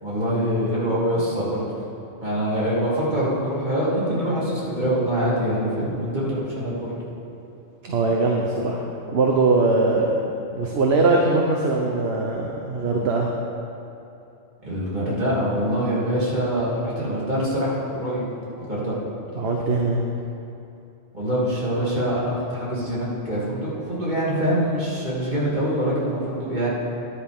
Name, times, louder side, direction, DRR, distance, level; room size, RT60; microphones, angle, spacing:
voice 1, 0.0-1.8 2.2-6.9 14.6-18.3 18.6-18.9 21.1-26.7, equal, 35° right, -8 dB, 3.0 m, -24 dB
voice 2, 7.8-10.1 10.5-13.3 19.3-20.0, right 3 dB, 55° right, 0 dB, 1.1 m, -21 dB
14.0 x 10.5 x 3.6 m, 2.8 s
omnidirectional pair, 1.4 m